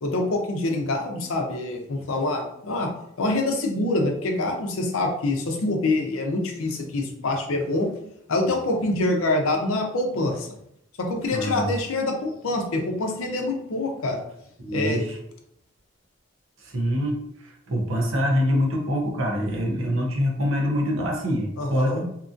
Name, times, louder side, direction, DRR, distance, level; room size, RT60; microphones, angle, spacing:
voice 1, 0.0-2.9 3.2-7.9 8.3-10.5 11.0-14.2 14.7-15.0 21.6-22.0, left 2 dB, 85° left, 3 dB, 0.6 m, -25 dB
voice 2, 11.3-11.7 14.6-15.2 16.6-22.1, equal, 80° right, 0 dB, 0.8 m, -25 dB
2.8 x 2.5 x 2.5 m, 0.75 s
head